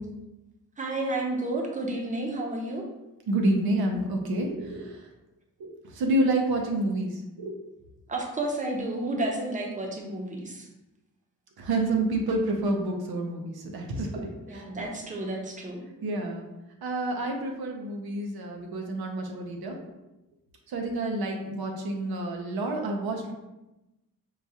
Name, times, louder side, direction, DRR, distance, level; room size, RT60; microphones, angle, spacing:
voice 1, 0.8-2.9 8.1-10.7 14.5-15.8, right 2 dB, 20° right, 0 dB, 0.6 m, -31 dB
voice 2, 3.3-5.1 5.6-7.6 11.6-14.9 16.0-16.5 16.8-19.8 20.7-23.3, right 1 dB, 90° right, 2 dB, 0.7 m, -29 dB
4.7 x 2.3 x 2.8 m, 0.98 s
wide cardioid pair, 120°, 36 cm